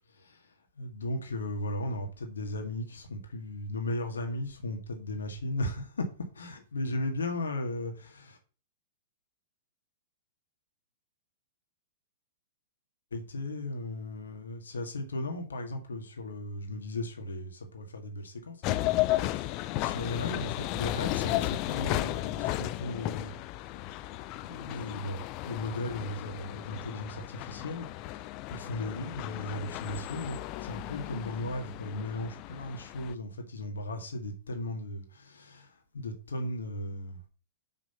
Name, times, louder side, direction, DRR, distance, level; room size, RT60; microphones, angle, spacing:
voice 1, 0.2-6.1 6.3-8.4 13.1-23.3 23.6-24.1 24.4-37.3, left 1 dB, 80° left, 1.8 m, -36 dB
sound 1, 18.6-33.1, left 16 dB, 40° left, 0.5 m, -34 dB
6.1 x 5.8 x 5.6 m
hypercardioid pair, 110°, 0 cm